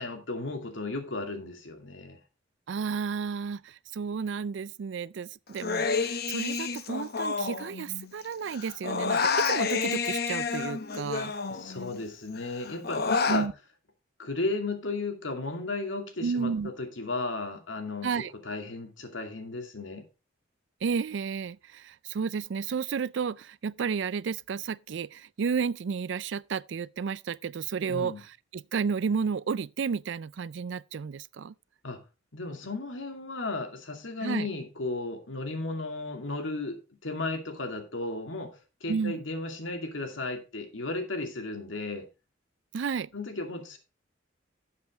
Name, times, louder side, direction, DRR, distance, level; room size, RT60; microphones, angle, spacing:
voice 1, 0.0-2.2 11.5-13.5 14.2-20.0 27.9-28.2 31.8-32.0 32.3-42.1 43.1-43.8, left 2 dB, 90° left, 2.4 m, -35 dB
voice 2, 2.7-11.3 13.3-13.5 16.2-16.7 18.0-18.3 20.8-31.5 34.2-34.5 38.9-39.2 42.7-43.1, right 6 dB, 70° right, 0.4 m, -32 dB
Human voice, 5.6-8.2 8.5-12.0 12.4-13.5, left 5 dB, 55° left, 0.9 m, -29 dB
11.5 x 7.6 x 3.5 m
head